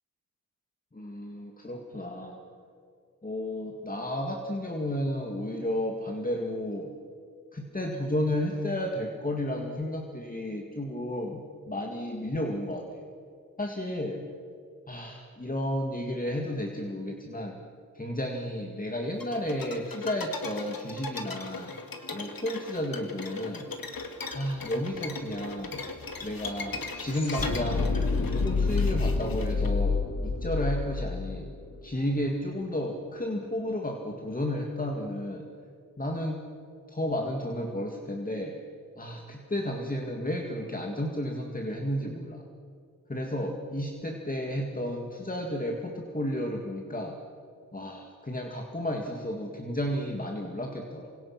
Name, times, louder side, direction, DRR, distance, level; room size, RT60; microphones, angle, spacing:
voice 1, 0.9-2.4 3.2-6.9 7.5-13.1 13.6-14.2 14.9-17.6 17.9-21.8 22.1-23.7 24.3-25.8 26.2-28.0 28.3-31.5 31.8-35.5 36.0-36.4 36.9-38.6 39.0-42.5 43.1-47.2 47.7-51.1, left 1 dB, 25° left, 2 dB, 2.2 m, -32 dB
sound 1, 19.2-29.7, left 3 dB, 90° left, 2.4 m, -39 dB
sound 2, 24.0-24.1 24.3-32.5, left 4 dB, 60° left, 2.7 m, -30 dB
28.5 x 26.0 x 6.0 m, 2.4 s
wide cardioid pair, 105°, 34 cm